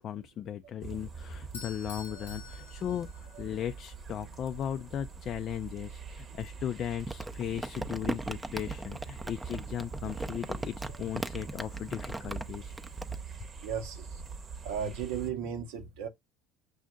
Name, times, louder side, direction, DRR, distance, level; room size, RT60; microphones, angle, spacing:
voice 1, 0.0-12.7, left 10 dB, 50° left, 0.3 m, -37 dB
sound 1, 0.8-15.3, right 5 dB, 40° right, 0.9 m, -44 dB
Bell / Doorbell, 1.5-3.6, left 5 dB, 85° left, 0.8 m, -48 dB
Crumpling crinkling, 7.1-13.2, right 2 dB, 10° right, 0.5 m, -38 dB
voice 2, 13.6-14.2 14.6-16.1, right 8 dB, 75° right, 0.7 m, -35 dB
6.3 x 2.5 x 2.3 m
hypercardioid pair, 75°, 0 cm